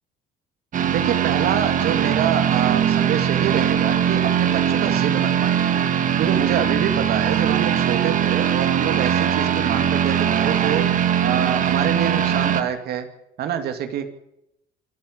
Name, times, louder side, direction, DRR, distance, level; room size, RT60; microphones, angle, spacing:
sound 1, 0.7-12.6, right 9 dB, 50° right, 1.7 m, -20 dB
voice 1, 0.8-5.7 6.2-13.1 13.4-14.1, right 9 dB, 70° right, 7 dB, 2.5 m, -26 dB
26.5 x 10.5 x 9.8 m, 0.84 s
cardioid pair, 110°, 17 cm